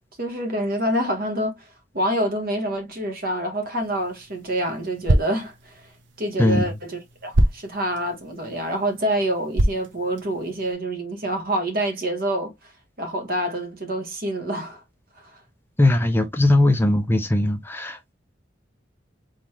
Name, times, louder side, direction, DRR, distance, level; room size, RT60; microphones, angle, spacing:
voice 1, 0.2-1.7 1.9-5.9 6.2-12.5 13.0-14.8, right 1 dB, 50° right, 1.4 m, -26 dB
sound 1, 3.8-10.7, right 1 dB, 80° right, 0.8 m, -27 dB
voice 2, 15.8-18.1, left 1 dB, 10° left, 0.6 m, -19 dB
4.1 x 3.9 x 2.9 m
head